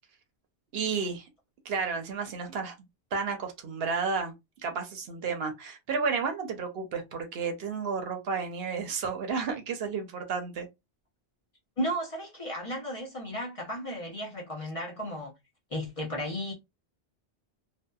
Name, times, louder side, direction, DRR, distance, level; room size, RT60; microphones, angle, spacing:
voice 1, 0.7-1.3 1.6-2.8 3.1-10.7, right 5 dB, 70° right, 0.8 m, -32 dB
voice 2, 11.8-15.3 15.7-16.5, equal, 40° left, 0.6 m, -34 dB
2.6 x 2.1 x 2.2 m
omnidirectional pair, 1.1 m